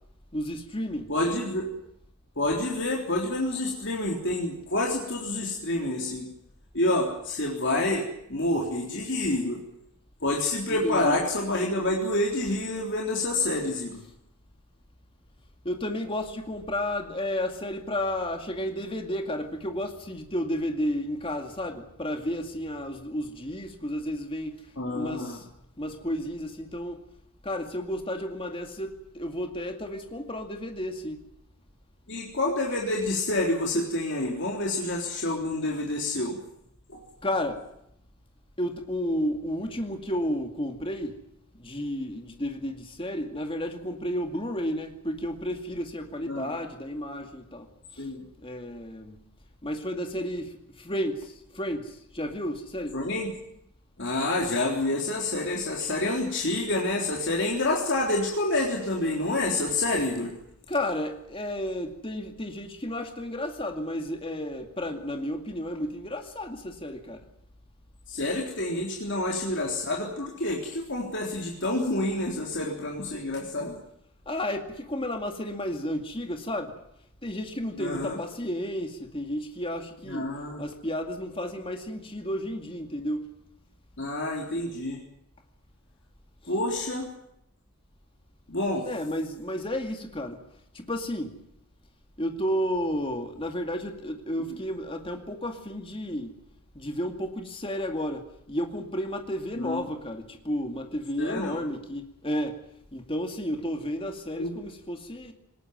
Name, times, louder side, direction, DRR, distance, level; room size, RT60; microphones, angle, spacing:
voice 1, 0.3-1.1 10.7-11.2 15.6-24.6 24.9-25.4 25.8-27.0 27.4-31.2 37.2-37.6 38.6-41.2 41.6-47.7 48.0-48.1 48.4-49.2 49.6-50.5 50.8-53.0 60.7-67.2 74.3-76.8 77.2-80.3 80.6-83.2 88.8-90.4 90.7-91.4 92.2-96.3 96.8-102.6 102.9-105.3, equal, 25° left, 2.3 m, -32 dB
voice 2, 1.1-1.7 2.4-6.2 6.7-9.6 10.2-14.0 24.8-25.4 32.1-36.4 36.9-37.0 46.3-46.5 48.0-48.2 52.9-53.3 54.0-60.3 68.1-73.8 77.8-78.2 80.1-80.6 84.0-85.0 86.5-87.1 88.5-88.9 99.6-99.8 101.2-101.6 104.4-104.5, left 2 dB, 55° left, 3.7 m, -28 dB
21.0 x 19.5 x 9.3 m
head